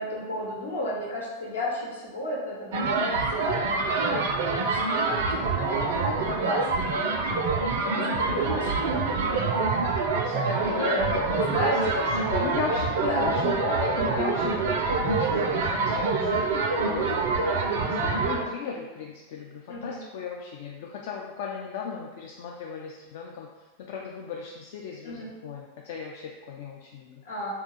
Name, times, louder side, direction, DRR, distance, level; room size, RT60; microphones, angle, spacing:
voice 1, 0.0-6.9 8.1-9.4 10.4-12.2 13.1-13.8 14.1-14.3 14.9-15.2 17.3-17.6 19.7-20.0 25.0-25.3 27.2-27.5, equal, 70° left, -6 dB, 1.0 m, -33 dB
sound 1, 2.7-18.4, right 4 dB, 55° right, 0.4 m, -26 dB
voice 2, 7.8-8.6 10.2-17.2 17.8-23.5 23.8-27.2, left 6 dB, 50° left, -1 dB, 0.3 m, -36 dB
2.8 x 2.3 x 3.9 m, 1.2 s
figure-of-eight pair, 90°, 0 cm